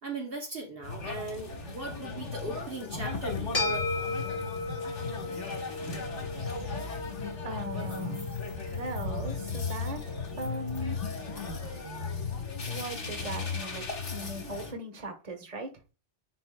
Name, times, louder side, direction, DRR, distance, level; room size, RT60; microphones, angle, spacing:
voice 1, 0.0-3.6, right 2 dB, 55° right, 1.2 m, -38 dB
sound 1, 0.8-14.7, left 4 dB, 75° left, 1.8 m, -36 dB
sound 2, 3.5-12.1, left 3 dB, 50° left, 3.6 m, -37 dB
sound 3, 5.7-5.8 6.1-6.4 6.7-10.9, left 1 dB, 5° right, 2.8 m, -56 dB
voice 2, 7.4-8.4 8.7-11.0 12.7-15.7, right 2 dB, 35° right, 1.2 m, -39 dB
9.8 x 4.2 x 2.3 m
omnidirectional pair, 1.2 m